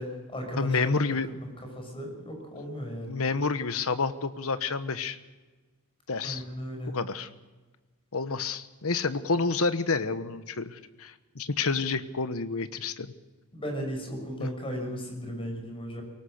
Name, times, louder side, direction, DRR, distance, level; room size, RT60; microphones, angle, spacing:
voice 1, 0.0-0.8 1.4-3.2 6.2-7.0 13.5-16.0, equal, 25° left, 3 dB, 6.3 m, -36 dB
voice 2, 0.6-1.3 3.1-5.2 6.1-6.4 6.9-7.3 8.1-13.1 14.4-14.5, left 4 dB, 70° left, 12 dB, 1.2 m, -29 dB
23.0 x 19.0 x 6.6 m, 1.2 s
head